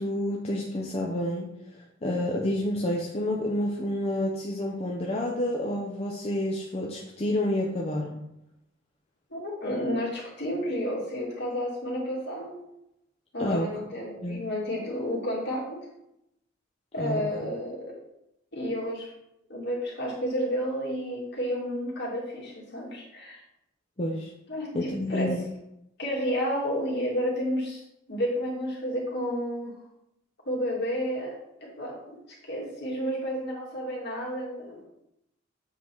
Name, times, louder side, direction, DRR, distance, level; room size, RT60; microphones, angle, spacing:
voice 1, 0.0-8.2 13.4-13.7 14.2-14.4 17.0-17.2 24.0-24.3 24.7-25.5, left 1 dB, 30° left, -1 dB, 0.7 m, -29 dB
voice 2, 9.3-12.6 13.3-15.7 16.9-18.0 18.5-19.1 19.5-23.4 24.5-25.3 26.0-27.8 28.1-29.8 30.5-31.3 31.6-32.2 32.4-34.8, equal, 60° left, -4 dB, 2.3 m, -31 dB
7.5 x 3.9 x 4.5 m, 0.85 s
head